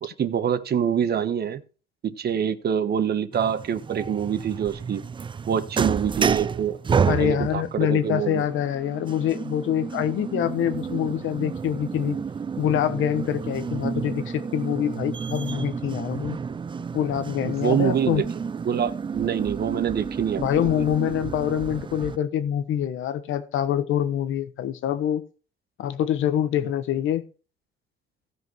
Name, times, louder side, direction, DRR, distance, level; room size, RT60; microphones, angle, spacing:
voice 1, 0.0-1.6 2.0-5.0 5.5-8.4 17.5-18.3 18.6-20.7, right 8 dB, 55° right, 1.2 m, -25 dB
sound 1, 3.3-22.2, right 6 dB, 25° right, 0.4 m, -30 dB
voice 2, 7.0-12.2 12.6-16.4 16.9-18.2 20.4-25.2 25.8-27.2, left 10 dB, 85° left, 1.3 m, -25 dB
15.5 x 5.2 x 4.7 m
cardioid pair, 90°, 20 cm